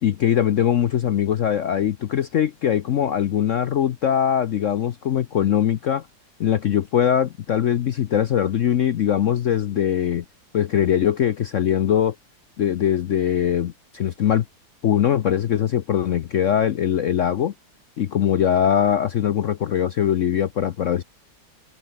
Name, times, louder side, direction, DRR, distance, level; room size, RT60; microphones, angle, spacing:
voice 1, 0.0-6.1 6.4-10.2 10.5-12.1 12.6-14.4 14.8-17.5 18.0-21.0, left 9 dB, 65° left, 0.8 m, -21 dB
omnidirectional pair, 2.0 m